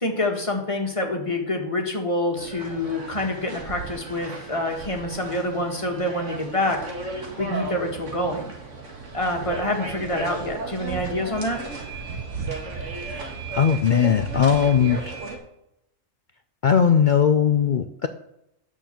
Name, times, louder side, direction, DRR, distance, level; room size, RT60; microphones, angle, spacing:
voice 1, 0.0-8.5 9.1-11.6, left 1 dB, 25° left, 2 dB, 1.5 m, -27 dB
sound 1, 2.4-15.4, right 3 dB, 65° right, 2.1 m, -35 dB
voice 2, 13.5-15.1 16.6-18.1, left 7 dB, 60° left, 8 dB, 0.5 m, -19 dB
9.2 x 6.1 x 7.4 m, 0.81 s
omnidirectional pair, 1.4 m